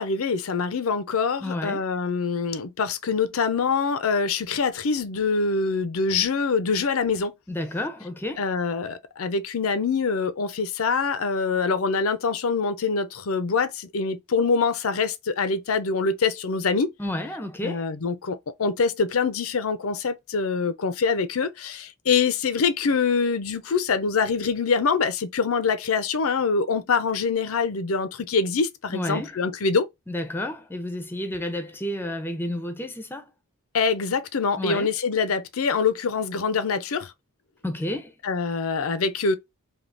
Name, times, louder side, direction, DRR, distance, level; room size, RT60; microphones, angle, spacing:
voice 1, 0.0-7.3 8.4-16.9 17.6-29.9 33.7-37.1 38.2-39.4, left 5 dB, 85° left, 0.6 m, -24 dB
voice 2, 1.4-1.8 7.5-8.5 17.0-17.8 28.9-29.4 30.1-33.3 34.6-34.9 37.6-38.1, left 1 dB, 10° left, 0.5 m, -31 dB
3.5 x 2.8 x 2.5 m
head